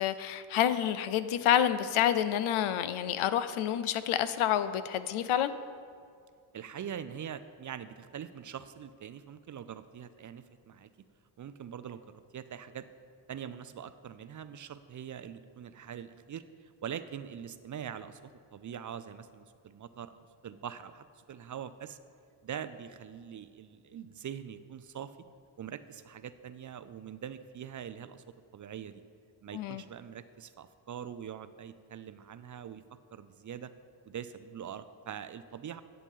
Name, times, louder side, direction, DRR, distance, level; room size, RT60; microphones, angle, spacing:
voice 1, 0.0-5.5 29.5-29.8, left 10 dB, 80° left, 12 dB, 0.6 m, -28 dB
voice 2, 6.5-10.9 11.4-12.0 12.3-12.9 13.3-20.1 20.4-22.0 22.4-25.2 25.6-28.2 28.5-29.0 29.4-32.8 33.1-33.7 34.1-35.8, right 9 dB, 40° right, 12 dB, 0.4 m, -43 dB
9.9 x 8.2 x 3.7 m, 2.2 s
cardioid pair, 70°, 49 cm